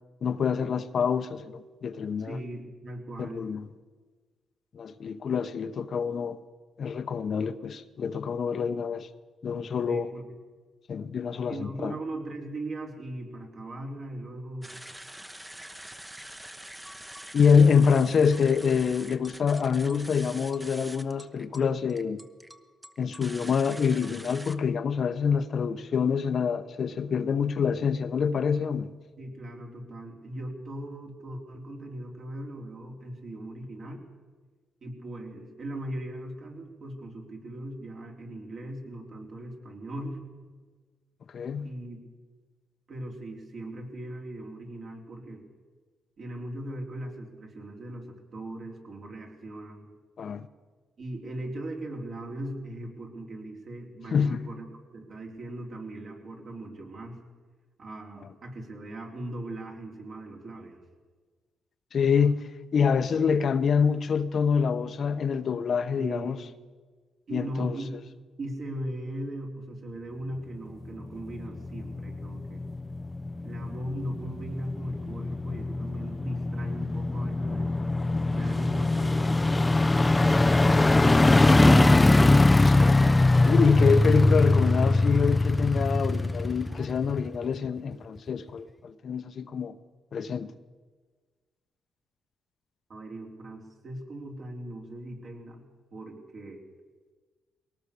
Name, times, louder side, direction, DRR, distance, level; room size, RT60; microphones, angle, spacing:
voice 1, 0.2-2.4 3.2-3.6 4.7-6.4 6.8-9.1 9.4-10.1 10.9-11.9 17.3-22.2 23.0-28.9 41.3-41.7 50.2-50.5 54.1-54.4 61.9-66.4 67.3-67.8 82.4-83.1 83.5-89.7 90.1-90.5, left 6 dB, 55° left, 0.9 m, -26 dB
voice 2, 2.2-3.5 9.9-10.3 11.5-14.7 29.2-34.1 34.8-40.2 41.6-42.0 42.9-45.5 46.2-49.9 51.0-54.6 54.9-57.2 57.8-60.8 66.0-66.5 67.3-67.9 68.4-72.6 73.4-77.8 78.3-81.2 92.9-96.6, right 1 dB, 55° right, 4.0 m, -39 dB
sound 1, 14.6-24.6, right 1 dB, 10° right, 1.0 m, -45 dB
sound 2, 71.0-87.6 87.9-88.0, left 2 dB, 15° left, 0.5 m, -22 dB
21.5 x 18.5 x 6.9 m
cardioid pair, 115°, 0 cm